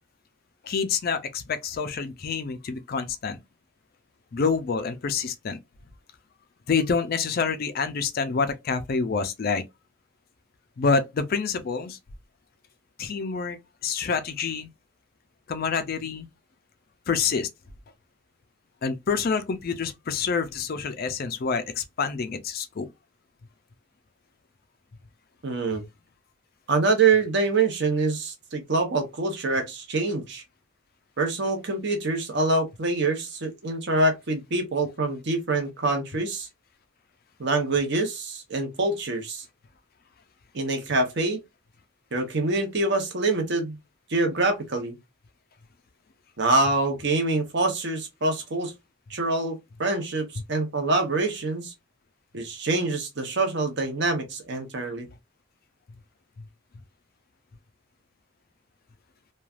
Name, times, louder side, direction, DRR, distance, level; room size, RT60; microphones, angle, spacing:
voice 1, 0.6-3.4 4.3-5.6 6.7-9.6 10.8-12.0 13.0-13.6 13.8-14.7 15.5-16.3 17.1-17.5 18.8-22.9 50.4-50.5 56.4-56.5, left 5 dB, 45° left, 0.4 m, -27 dB
voice 2, 25.4-25.8 26.7-30.4 31.2-36.5 37.4-39.4 40.5-41.4 42.1-43.8 44.1-45.0 46.4-48.7 49.1-51.7 52.3-55.1, right 3 dB, 55° right, 0.8 m, -25 dB
3.1 x 2.3 x 2.3 m
head